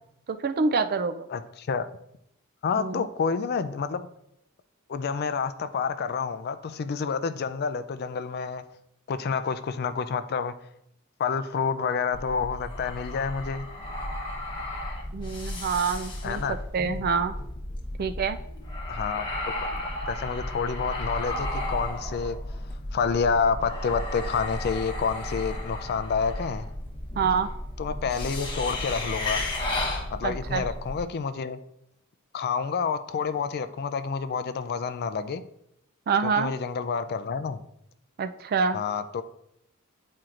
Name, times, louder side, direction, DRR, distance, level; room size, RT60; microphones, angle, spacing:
voice 1, 0.3-1.3 2.8-3.0 15.1-16.4 16.7-17.3 18.0-18.4 27.2-27.5 30.2-30.6 36.1-36.5 38.2-38.8, right 5 dB, 45° right, 10 dB, 0.4 m, -26 dB
voice 2, 1.3-1.9 2.6-4.0 4.9-8.6 9.1-10.5 11.2-13.7 16.2-16.6 18.9-19.2 19.6-22.4 22.9-26.7 27.8-29.4 30.1-31.6 32.3-35.4 36.2-37.6 38.7-39.2, left 5 dB, 50° left, 12 dB, 0.4 m, -29 dB
sound 1, 12.1-31.0, left 1 dB, 20° left, 1.0 m, -34 dB
9.3 x 4.4 x 2.5 m, 0.77 s
head